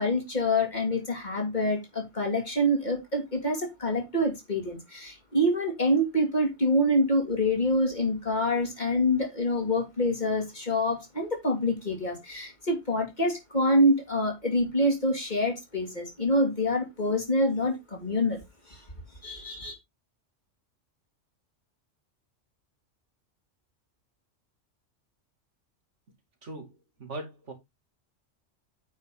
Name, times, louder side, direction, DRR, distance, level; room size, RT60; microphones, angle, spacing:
voice 1, 0.0-18.4 18.7-18.8 19.2-19.8, left 1 dB, 35° left, 2.9 m, -26 dB
voice 2, 26.4-26.7 27.0-27.5, right 2 dB, 70° right, 2.8 m, -39 dB
9.2 x 5.4 x 3.8 m
omnidirectional pair, 1.3 m